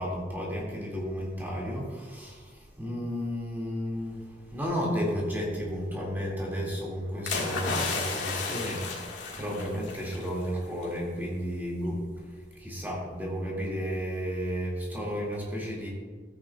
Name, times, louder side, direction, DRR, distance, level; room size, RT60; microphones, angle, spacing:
voice 1, 0.0-15.9, equal, 10° right, -4 dB, 2.2 m, -33 dB
sound 1, 7.3-10.3 10.6-10.8, left 3 dB, 85° left, 1.9 m, -32 dB
13.5 x 9.1 x 2.4 m, 1.5 s
head